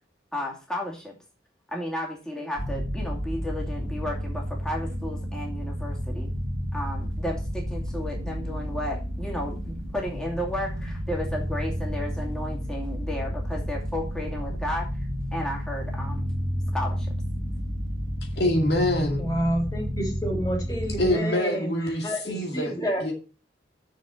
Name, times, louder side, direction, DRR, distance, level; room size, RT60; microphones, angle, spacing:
voice 1, 0.3-1.2 1.7-6.3 6.7-16.3 16.7-17.1, left 1 dB, 5° left, -2 dB, 2.4 m, -33 dB
sound 1, 2.6-21.2, equal, 65° right, 2.6 m, -31 dB
voice 2, 18.4-19.2 21.0-22.7 23.0-23.1, left 1 dB, 60° left, 2 dB, 2.3 m, -25 dB
voice 3, 19.2-23.0, equal, 20° left, 1 dB, 3.1 m, -29 dB
7.0 x 6.3 x 7.5 m, 0.35 s
head